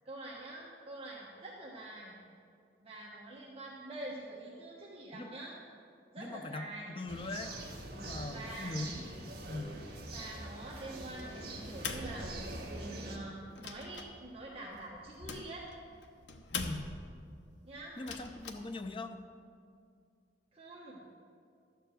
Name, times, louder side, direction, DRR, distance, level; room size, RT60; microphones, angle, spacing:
voice 1, 0.0-2.2 2.8-5.6 6.1-6.9 8.3-8.8 10.1-12.3 12.6-15.7 17.6-18.0 20.5-21.0, right 1 dB, 35° right, -4 dB, 1.1 m, -46 dB
voice 2, 6.2-7.6 7.9-8.9 9.5-9.8 16.5-16.9 18.0-19.2, left 2 dB, 30° left, 6 dB, 0.6 m, -41 dB
sound 1, 7.1-13.2, right 2 dB, 55° right, 1.7 m, -44 dB
sound 2, 11.7-12.9 13.3-17.2 17.9-18.5, left 4 dB, 75° left, 0.8 m, -43 dB
12.0 x 4.6 x 7.6 m, 2.3 s
head